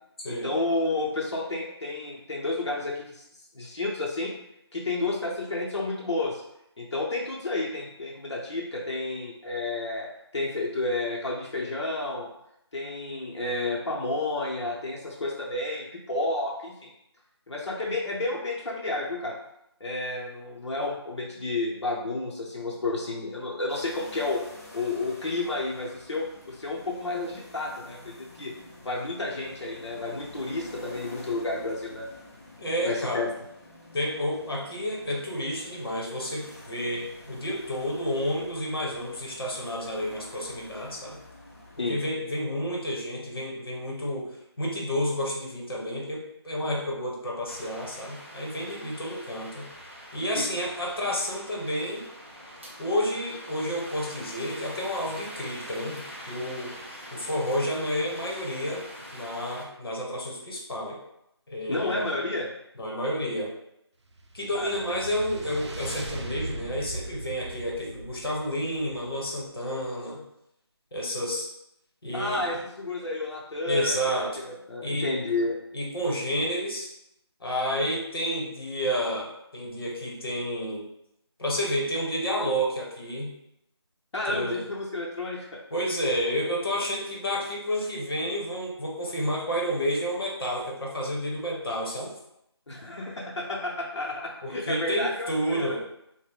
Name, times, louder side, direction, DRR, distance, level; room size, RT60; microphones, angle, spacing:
voice 1, 0.3-3.2 3.5-4.3 4.7-6.4 6.8-12.3 12.7-16.9 17.5-19.4 19.8-24.4 24.7-28.5 28.8-32.1 32.8-33.3 41.8-42.0 50.3-50.5 61.7-62.5 64.5-65.0 72.1-75.6 84.1-85.6 92.7-95.8, left 2 dB, 90° left, -3 dB, 0.6 m, -31 dB
sound 1, 23.7-41.9, left 1 dB, 35° left, 0.5 m, -48 dB
voice 2, 32.6-33.3 33.9-41.2 41.9-49.7 50.1-52.0 52.8-56.7 57.1-58.8 59.1-61.0 61.5-62.0 62.8-63.5 64.3-70.2 70.9-71.5 72.0-72.5 73.7-74.4 74.8-75.1 75.7-76.9 77.4-80.9 81.4-83.4 84.3-84.6 85.7-92.1 94.4-95.8, equal, 60° left, -2 dB, 0.9 m, -30 dB
sound 2, 47.5-59.7, equal, 25° right, 0.4 m, -44 dB
sound 3, 64.1-69.6, right 2 dB, 85° right, 0.5 m, -39 dB
2.3 x 2.0 x 3.4 m, 0.80 s
figure-of-eight pair, 175°, 14 cm